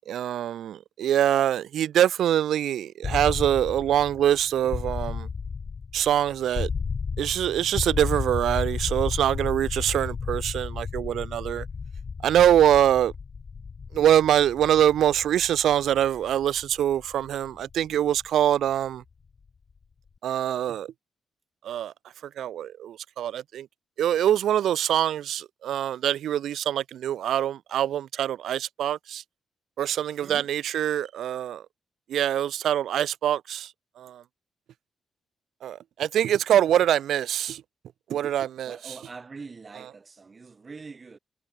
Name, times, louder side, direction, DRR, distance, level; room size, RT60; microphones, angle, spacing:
voice 1, 0.1-5.3 5.9-6.7 7.2-11.6 12.2-13.1 13.9-19.0 20.2-20.9 21.6-21.9 22.4-23.7 24.0-29.2 29.8-31.6 32.1-33.7 34.0-34.2 35.6-37.6 38.1-38.7, right 11 dB, 80° right, 1.4 m, -24 dB
sound 1, 3.0-18.9, left 5 dB, 35° left, 3.7 m, -33 dB
voice 2, 38.7-41.2, right 4 dB, 30° right, 6.3 m, -43 dB
cardioid pair, 135°, 0 cm